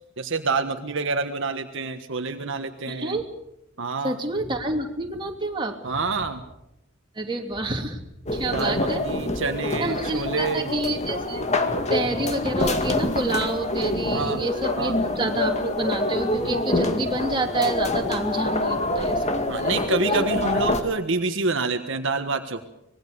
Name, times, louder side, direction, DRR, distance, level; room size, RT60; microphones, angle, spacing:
voice 1, 0.2-3.2 3.8-4.2 5.8-6.4 8.5-10.7 14.1-14.4 14.8-15.0 19.5-22.6, right 4 dB, 65° right, 6 dB, 1.5 m, -27 dB
voice 2, 2.9-3.3 4.0-5.8 7.1-9.0 9.8-11.5 11.9-19.4 20.1-20.2, right 2 dB, 25° right, 2 dB, 3.0 m, -28 dB
sound 1, 8.3-20.8, left 2 dB, 35° left, 2.1 m, -26 dB
25.0 x 20.5 x 6.9 m, 0.83 s
head